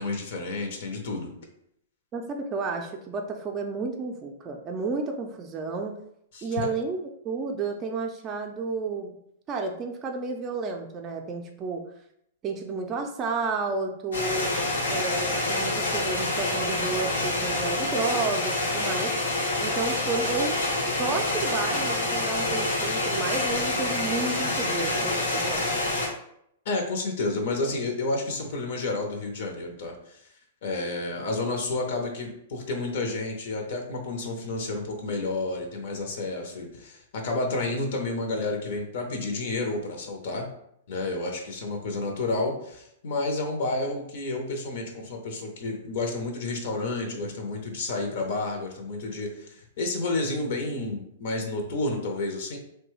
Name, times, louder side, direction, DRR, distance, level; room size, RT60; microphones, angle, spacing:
voice 1, 0.0-1.3 6.3-6.7 26.6-30.2 30.6-40.5 40.9-52.6, left 2 dB, 65° left, 2 dB, 0.7 m, -30 dB
voice 2, 2.1-6.0 6.4-7.0 7.2-9.1 9.5-11.8 12.4-14.6 14.9-19.1 19.6-20.6 21.0-25.7, right 4 dB, 30° right, 2 dB, 0.4 m, -31 dB
sound 1, 14.1-26.1, left 2 dB, 90° left, 1.0 m, -27 dB
2.9 x 2.2 x 3.1 m, 0.73 s
hypercardioid pair, 125°, 0 cm